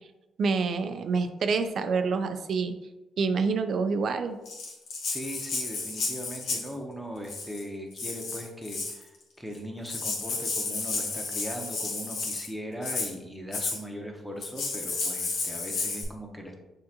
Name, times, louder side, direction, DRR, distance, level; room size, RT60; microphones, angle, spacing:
voice 1, 0.4-2.7 3.2-4.4, right 4 dB, 55° right, 9 dB, 0.4 m, -27 dB
Rattle (instrument), 4.5-6.7 7.2-7.6 8.0-9.0 9.6-9.7 9.9-12.5 12.8-13.1 13.5-13.8 14.4-16.0, left 3 dB, 80° left, 1.1 m, -32 dB
voice 2, 5.0-16.6, equal, ahead, 1 dB, 0.8 m, -39 dB
6.2 x 2.5 x 2.9 m, 1.0 s
cardioid pair, 90°, 0 cm